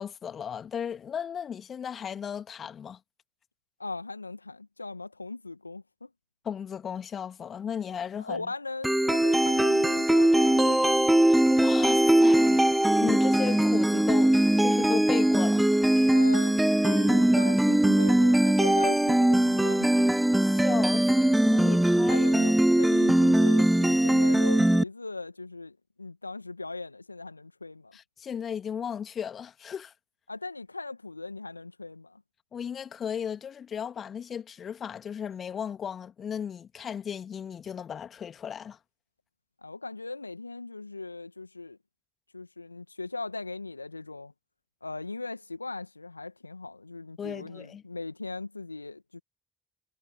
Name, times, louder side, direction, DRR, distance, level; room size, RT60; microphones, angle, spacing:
voice 1, 0.0-3.0 6.4-8.5 11.3-12.7 13.0-15.7 20.4-22.3 27.9-29.9 32.5-38.8 47.2-47.8, left 8 dB, 45° left, 2.2 m, -35 dB
voice 2, 3.8-6.1 8.2-11.1 16.1-20.1 22.1-28.0 30.3-32.2 39.6-41.8 42.3-44.3 44.8-49.2, left 3 dB, 90° left, 1.9 m, -39 dB
sound 1, 8.8-24.8, right 1 dB, 5° right, 0.5 m, -21 dB
figure-of-eight pair, 45°, 0 cm